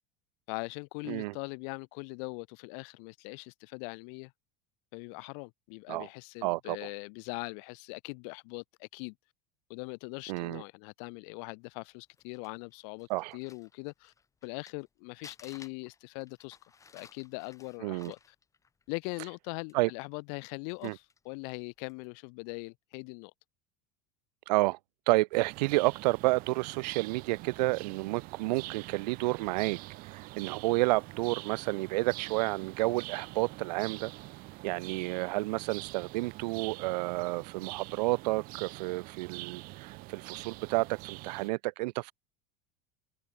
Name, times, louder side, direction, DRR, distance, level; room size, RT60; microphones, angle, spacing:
voice 1, 0.5-4.3 4.9-9.1 9.7-13.1 13.3-14.1 14.4-16.6 16.9-18.3 18.9-23.3, left 40 dB or more, 55° left, 1.5 m, -41 dB
voice 2, 6.4-6.8 10.3-10.6 13.1-13.3 17.8-18.1 19.7-19.9 20.8-20.9 24.5-24.8 25.1-29.8 30.1-34.1 34.6-42.1, right 22 dB, 75° right, 1.3 m, -30 dB
Crumpling crinkling, 11.9-14.9 15.2-19.4 19.7-19.8 20.4-21.3 21.8-22.1, left 5 dB, 15° left, 4.4 m, -56 dB
sound 1, 25.3-41.5, right 22 dB, 45° right, 1.0 m, -45 dB
open air
supercardioid pair, 160°, 21 cm